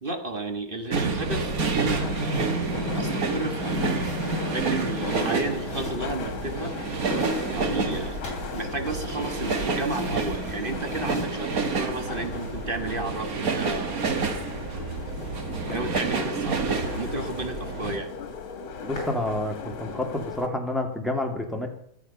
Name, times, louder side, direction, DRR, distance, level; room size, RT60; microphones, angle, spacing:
voice 1, 0.0-2.4 2.9-4.1 4.5-6.7 7.5-8.2 8.5-14.0 15.0-15.2 15.5-18.1, right 2 dB, 30° right, 6 dB, 1.4 m, -33 dB
sound 1, 0.9-18.0, right 4 dB, 50° right, 1.7 m, -29 dB
sound 2, 1.4-13.0 14.3-15.4 15.7-15.9 16.3-16.5 16.9-17.0 17.3-17.4 17.7-18.2 18.5-19.2, left 1 dB, 35° left, 4.7 m, -43 dB
sound 3, 2.0-20.5, left 5 dB, 85° left, 2.4 m, -37 dB
voice 2, 18.8-21.7, left 1 dB, ahead, 1 dB, 2.2 m, -29 dB
23.0 x 8.2 x 5.6 m, 0.68 s
omnidirectional pair, 2.2 m